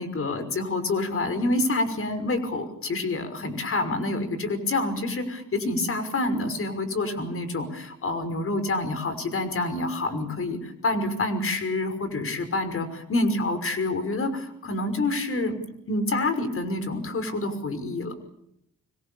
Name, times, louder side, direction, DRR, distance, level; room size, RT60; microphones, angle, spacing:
voice 1, 0.0-15.6 15.9-18.1, left 2 dB, 45° left, 10 dB, 5.8 m, -27 dB
26.5 x 24.5 x 7.2 m, 0.78 s
cardioid pair, 90°, 30 cm